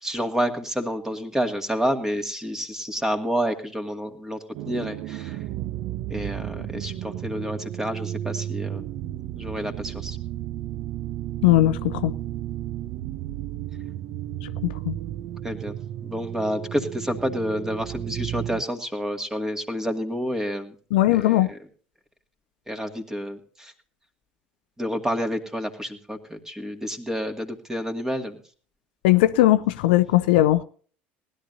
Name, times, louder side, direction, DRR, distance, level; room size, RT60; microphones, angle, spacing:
voice 1, 0.0-5.4 6.1-8.9 9.3-10.2 15.4-15.7 16.0-20.7 21.1-21.4 22.7-23.7 24.8-28.4, equal, 10° right, 2.1 m, -29 dB
sound 1, 4.5-18.6, right 12 dB, 55° right, 0.6 m, -33 dB
voice 2, 11.4-12.1 14.4-15.0 20.9-21.5 29.0-30.6, left 15 dB, 65° left, 0.6 m, -19 dB
19.5 x 12.0 x 2.7 m
figure-of-eight pair, 70°, 5 cm